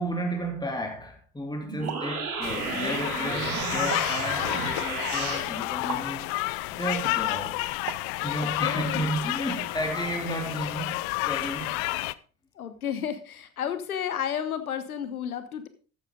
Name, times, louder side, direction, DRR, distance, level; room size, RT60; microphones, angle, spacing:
voice 1, 0.0-6.3 6.8-7.8 8.2-11.7, right 1 dB, 10° left, 3.2 m, -33 dB
sound 1, 1.6-5.4, right 4 dB, 85° right, 2.5 m, -32 dB
sound 2, 1.9-2.2 3.9-4.2 5.9-6.1 7.9-8.2, right 10 dB, 45° right, 1.3 m, -37 dB
sound 3, 2.4-12.1, left 20 dB, 65° left, 0.6 m, -30 dB
voice 2, 8.4-9.0 12.6-15.7, left 9 dB, 85° left, 1.2 m, -32 dB
14.0 x 9.6 x 3.8 m
figure-of-eight pair, 50°, 42 cm